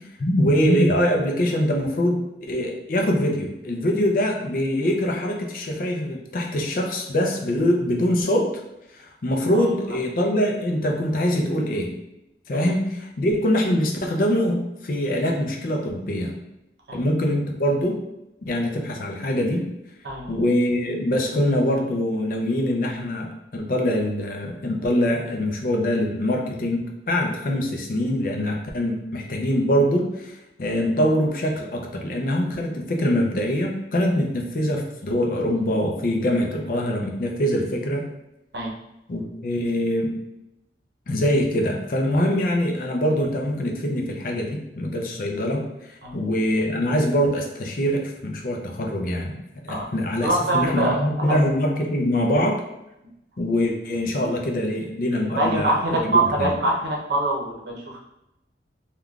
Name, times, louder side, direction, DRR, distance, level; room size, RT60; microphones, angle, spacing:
voice 1, 0.2-8.5 8.9-11.9 12.5-16.3 16.9-18.0 18.4-19.6 20.3-38.1 39.1-40.1 41.1-45.6 45.9-49.4 49.6-52.6 53.4-56.1 56.4-56.5, equal, 50° left, 1 dB, 0.4 m, -23 dB
voice 2, 20.0-20.4 38.5-38.7 46.0-46.1 49.7-49.8 50.2-51.3 55.3-58.0, right 2 dB, 75° right, -2 dB, 0.7 m, -24 dB
3.5 x 2.3 x 2.3 m, 0.87 s
head